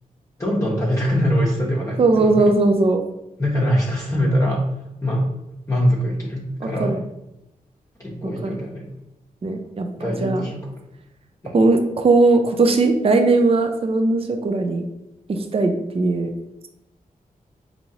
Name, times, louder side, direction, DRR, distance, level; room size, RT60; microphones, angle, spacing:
voice 1, 0.4-2.5 3.4-5.3 5.7-7.0 8.0-8.9 9.9-10.6 11.4-11.5, equal, 20° left, -6 dB, 0.9 m, -23 dB
voice 2, 2.0-3.0 6.6-7.0 8.4-8.6 9.4-9.9 10.2-10.4 11.5-14.8 15.3-16.3, right 3 dB, 40° right, 5 dB, 0.4 m, -18 dB
4.3 x 2.7 x 2.7 m, 0.89 s
wide cardioid pair, 80°, 15 cm